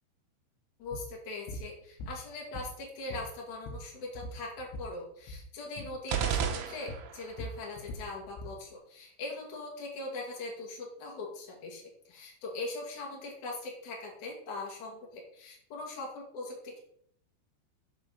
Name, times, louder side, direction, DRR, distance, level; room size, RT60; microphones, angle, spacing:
voice 1, 0.8-16.8, left 2 dB, 50° left, -2 dB, 3.1 m, -41 dB
sound 1, 0.9-1.1 1.5-1.7 2.0-2.8 3.1-4.9 5.2-5.5 5.8-6.0 6.4-6.6 6.9-8.6, left 1 dB, 90° left, 3.4 m, -42 dB
sound 2, 6.1-7.4, right 9 dB, 75° right, 2.6 m, -32 dB
7.4 x 4.7 x 6.6 m, 0.68 s
omnidirectional pair, 5.4 m